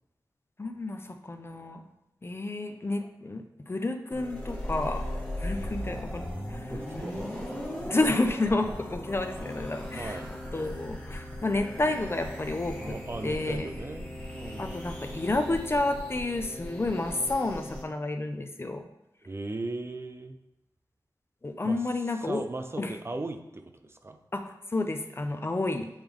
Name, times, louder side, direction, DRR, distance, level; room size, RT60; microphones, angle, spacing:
voice 1, 0.6-1.8 2.2-5.0 5.4-6.7 7.2-7.3 7.8-10.2 10.5-12.9 13.2-13.7 14.6-18.9 21.4-22.4 22.8-22.9 24.3-24.4 24.7-25.9, left 2 dB, 30° left, 6 dB, 0.5 m, -30 dB
sound 1, 4.1-17.8, left 1 dB, 15° left, 1.3 m, -38 dB
voice 2, 5.6-6.0 6.7-7.4 9.9-10.3 12.8-14.9 19.2-20.4 21.6-21.8 22.2-24.2, right 2 dB, 35° right, 6 dB, 0.5 m, -38 dB
7.8 x 3.4 x 3.6 m, 0.91 s
wide cardioid pair, 90°, 8 cm